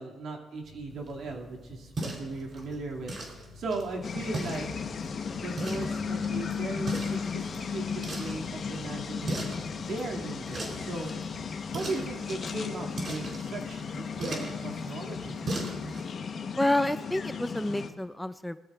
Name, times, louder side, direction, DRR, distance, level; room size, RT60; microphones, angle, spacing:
voice 1, 0.0-4.8 5.3-9.5 9.8-11.1 11.7-15.4, right 3 dB, 65° right, 0 dB, 2.4 m, -38 dB
sound 1, 0.6-15.7 16.9-17.7, left 5 dB, 65° left, 2.9 m, -54 dB
sound 2, 0.9-16.1, right 2 dB, 45° right, 3.7 m, -40 dB
sound 3, 4.0-17.9, left 6 dB, 50° left, 1.1 m, -35 dB
voice 2, 16.6-18.6, left 1 dB, 5° left, 12 dB, 0.4 m, -29 dB
21.0 x 13.0 x 2.5 m, 1.1 s
cardioid pair, 90°, 0 cm